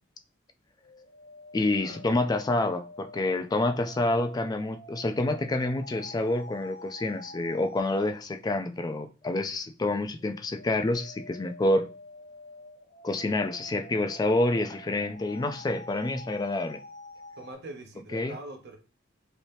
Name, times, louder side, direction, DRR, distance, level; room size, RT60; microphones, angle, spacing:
sound 1, 0.8-8.2 10.2-17.5, left 1 dB, 50° left, 0.7 m, -48 dB
voice 1, 1.5-11.9 13.0-16.8 18.1-18.3, left 2 dB, 20° left, 0.3 m, -28 dB
voice 2, 17.4-18.8, right 2 dB, 55° right, 0.7 m, -43 dB
3.3 x 2.8 x 2.6 m
head